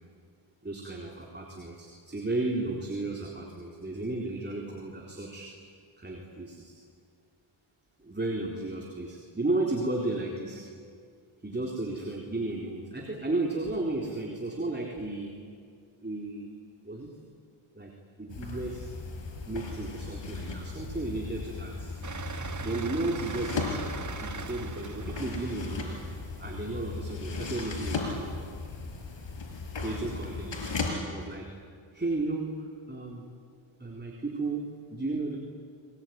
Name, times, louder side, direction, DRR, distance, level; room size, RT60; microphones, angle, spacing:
voice 1, 0.6-5.5 6.0-6.8 8.0-10.6 11.4-15.4 16.0-16.5 16.8-17.1 17.7-18.9 19.5-21.9 22.6-23.7 24.2-25.9 26.4-28.3 29.8-30.7 31.1-31.5 31.9-33.3 33.8-35.4, right 2 dB, 20° right, 0 dB, 4.0 m, -34 dB
sound 1, 18.3-30.9, left 3 dB, 65° left, 5.5 m, -36 dB
sound 2, 22.0-27.0, right 5 dB, 35° right, 1.6 m, -41 dB
28.5 x 20.5 x 9.5 m, 2.2 s
cardioid pair, 65°, 49 cm